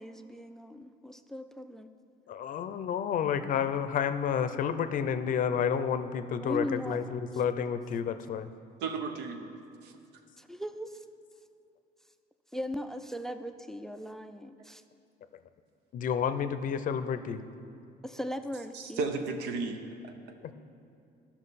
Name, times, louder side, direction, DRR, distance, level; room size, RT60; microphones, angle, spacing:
voice 1, 0.0-1.9 6.4-7.0 10.4-11.0 12.5-14.8 18.0-19.0, equal, 5° left, 9 dB, 0.3 m, -38 dB
voice 2, 2.3-8.5 15.9-17.4 20.4-20.5, left 7 dB, 50° left, 11 dB, 0.5 m, -30 dB
voice 3, 8.8-9.5 9.8-9.9 18.7-20.5, right 4 dB, 85° right, 6 dB, 0.9 m, -35 dB
13.0 x 5.8 x 4.1 m, 2.5 s
cardioid pair, 110°, 17 cm